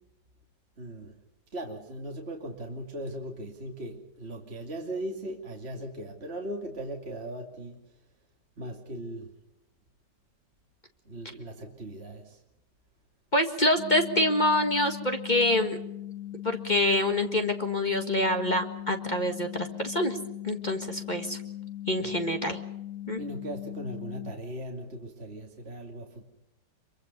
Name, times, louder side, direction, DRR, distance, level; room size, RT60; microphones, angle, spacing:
voice 1, 0.8-1.2 1.5-7.8 8.6-9.3 11.0-12.4 22.0-22.2 23.2-26.3, right 1 dB, 35° right, 1 dB, 2.8 m, -38 dB
voice 2, 13.3-15.8 16.4-20.2 20.4-21.4 21.9-22.6 23.1-23.2, left 1 dB, 25° left, 5 dB, 1.7 m, -26 dB
sound 1, 13.8-24.3, left 13 dB, 65° left, 1.8 m, -39 dB
26.0 x 24.0 x 5.5 m, 0.88 s
omnidirectional pair, 1.9 m